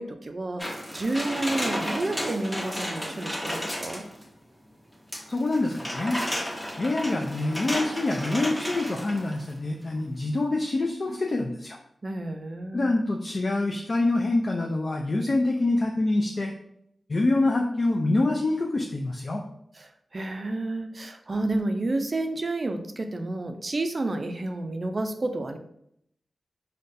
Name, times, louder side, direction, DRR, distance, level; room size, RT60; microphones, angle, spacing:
voice 1, 0.0-4.1 12.0-12.9 19.8-25.6, right 2 dB, 45° right, 6 dB, 0.4 m, -30 dB
sound 1, 0.6-4.3 5.1-9.5 9.9-10.0, equal, 15° left, 0.7 m, -33 dB
voice 2, 5.3-6.2 6.8-11.8 12.7-16.5 17.1-19.4, left 2 dB, 50° left, 1 dB, 0.3 m, -26 dB
3.8 x 2.2 x 2.5 m, 0.72 s
cardioid pair, 55°, 0 cm